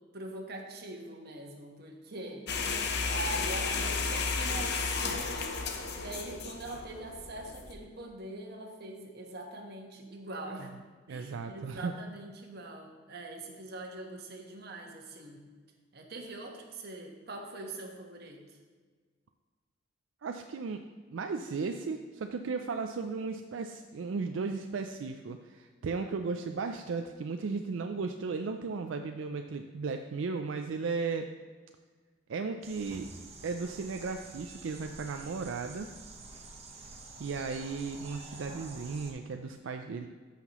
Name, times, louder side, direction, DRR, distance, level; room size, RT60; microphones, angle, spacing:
voice 1, 0.1-2.5 3.1-5.6 6.0-10.7 11.1-15.4 15.9-18.4, right 2 dB, 55° right, 2 dB, 1.2 m, -43 dB
sound 1, 2.5-7.7, left 4 dB, 60° left, 0.8 m, -33 dB
voice 2, 11.1-12.0 20.2-20.8 21.1-31.3 32.3-33.1 33.4-35.9 37.2-40.1, right 4 dB, 85° right, 6 dB, 0.4 m, -35 dB
sound 2, 32.6-39.1, right 3 dB, 35° right, 1.1 m, -48 dB
14.0 x 5.8 x 3.0 m, 1.5 s
head